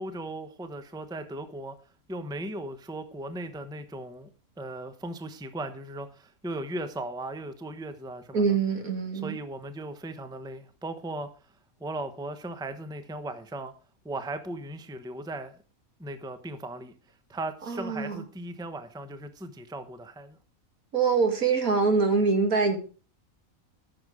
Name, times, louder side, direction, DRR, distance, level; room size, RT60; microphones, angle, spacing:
voice 1, 0.0-1.7 2.1-4.3 4.6-8.6 9.2-11.3 11.8-13.7 14.0-15.6 16.0-16.9 17.3-20.4, right 2 dB, 5° right, 0.8 m, -37 dB
voice 2, 8.3-9.4 17.7-18.2 20.9-22.8, right 4 dB, 75° right, 2.7 m, -24 dB
14.0 x 7.1 x 4.9 m
omnidirectional pair, 1.5 m